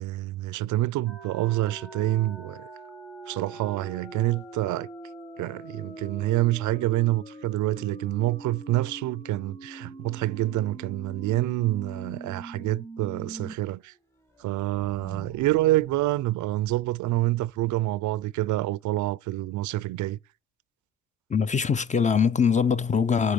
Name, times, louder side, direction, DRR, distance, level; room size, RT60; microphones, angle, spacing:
voice 1, 0.0-2.7 3.3-4.9 5.4-13.9 14.4-20.2, right 16 dB, 80° right, 0.5 m, -27 dB
sound 1, 1.1-13.5 13.9-14.0 14.3-17.0, right 2 dB, 10° left, 1.1 m, -43 dB
voice 2, 21.3-23.3, left 6 dB, 25° left, 0.5 m, -22 dB
8.1 x 8.0 x 6.9 m
cardioid pair, 90°, 30 cm